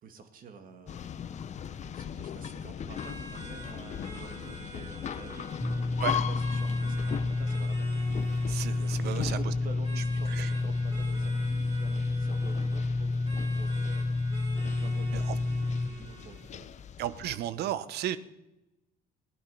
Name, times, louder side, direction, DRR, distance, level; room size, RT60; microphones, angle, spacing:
voice 1, 0.0-1.4 1.9-5.6 6.2-8.1 8.8-14.2 14.6-16.7, right 5 dB, 55° right, 8 dB, 2.0 m, -49 dB
sound 1, 0.9-17.4, left 8 dB, 45° left, 0.8 m, -40 dB
sound 2, 2.9-16.5, right 2 dB, 30° right, 4.3 m, -48 dB
sound 3, 5.6-15.9, left 3 dB, 10° left, 0.6 m, -29 dB
voice 2, 8.5-9.5 10.3-10.5 15.1-15.4 17.0-18.2, right 12 dB, 75° right, 15 dB, 0.9 m, -34 dB
17.0 x 11.5 x 5.6 m, 0.95 s
cardioid pair, 110°, 17 cm